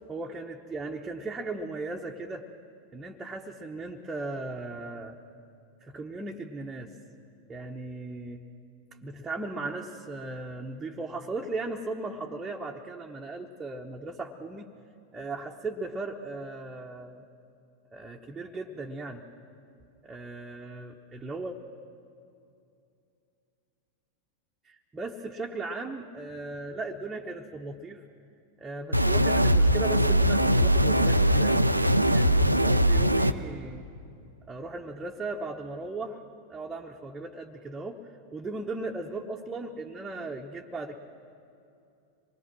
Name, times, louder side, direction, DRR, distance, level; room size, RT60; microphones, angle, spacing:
voice 1, 0.1-2.5 2.9-5.2 5.8-6.9 7.5-8.4 9.0-14.7 15.1-17.2 17.9-19.2 20.0-21.6 24.6-28.0 28.6-31.7 32.1-33.9 34.5-36.2 36.5-38.0 38.3-41.0, right 3 dB, 15° right, 0 dB, 1.1 m, -37 dB
sound 1, 28.9-33.3, equal, 90° right, 0.6 m, -21 dB
25.5 x 21.0 x 6.2 m, 2.6 s
figure-of-eight pair, 90°, 0 cm